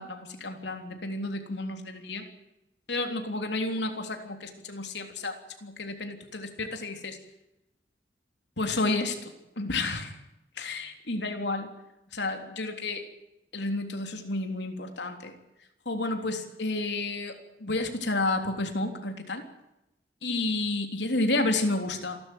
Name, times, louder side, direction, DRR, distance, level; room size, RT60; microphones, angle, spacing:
voice 1, 0.0-2.3 2.9-7.2 8.6-10.2 10.6-11.7 12.1-13.1 13.5-15.3 15.9-19.4 20.2-22.2, left 2 dB, 70° left, 5 dB, 3.5 m, -31 dB
27.5 x 12.5 x 9.3 m, 0.91 s
head